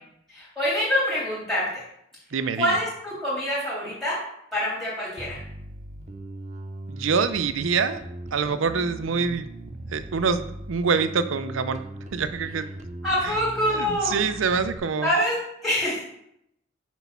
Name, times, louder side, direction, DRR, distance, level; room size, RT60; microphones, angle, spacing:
voice 1, 0.3-1.8 2.6-4.2 4.5-5.4 13.0-14.1 15.0-16.0, equal, ahead, -10 dB, 2.8 m, -25 dB
voice 2, 2.3-2.7 6.9-8.0 8.3-9.5 9.9-11.8 12.1-12.7 13.7-15.1, right 5 dB, 85° right, 11 dB, 0.5 m, -25 dB
Bass guitar, 5.2-14.8, right 1 dB, 35° right, 0.6 m, -39 dB
6.2 x 4.1 x 5.7 m, 0.76 s
head